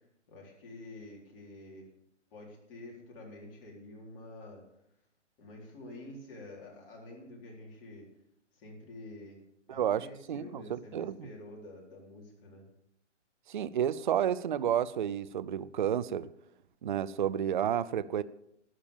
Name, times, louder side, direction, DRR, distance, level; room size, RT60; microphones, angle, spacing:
voice 1, 0.3-1.9 2.3-4.6 5.4-8.1 8.5-9.4 9.7-12.6, left 2 dB, 25° left, 4.1 m, -48 dB
voice 2, 9.7-11.3 13.5-16.3 16.8-18.2, right 9 dB, 40° right, 0.5 m, -31 dB
12.5 x 9.9 x 7.2 m
hypercardioid pair, 145°, 37 cm